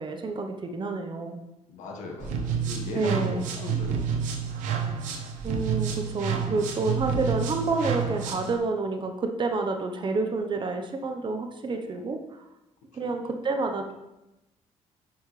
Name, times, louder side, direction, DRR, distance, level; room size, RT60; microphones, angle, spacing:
voice 1, 0.0-1.4 2.9-3.4 5.4-12.4 12.9-13.9, right 3 dB, 40° right, 4 dB, 0.8 m, -29 dB
voice 2, 1.7-4.2 12.9-13.1, left 4 dB, 90° left, 0 dB, 1.3 m, -38 dB
sound 1, 2.2-8.6, right 6 dB, 90° right, 1.0 m, -29 dB
8.6 x 5.6 x 3.2 m, 0.95 s
cardioid pair, 90°, 13 cm